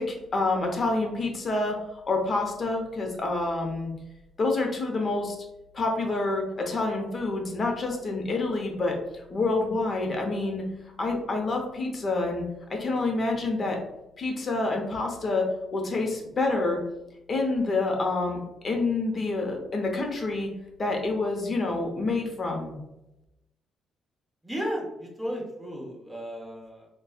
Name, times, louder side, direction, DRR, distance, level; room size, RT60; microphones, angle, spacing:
voice 1, 0.0-3.9 4.4-5.4 5.7-9.0 9.3-10.6 11.0-12.4 12.7-13.8 14.2-16.8 17.3-20.5 20.8-22.8, left 3 dB, 40° left, 2 dB, 0.8 m, -27 dB
voice 2, 24.4-26.9, equal, 5° right, -2 dB, 1.1 m, -34 dB
4.1 x 2.3 x 2.3 m, 0.91 s
cardioid pair, 90°, 0 cm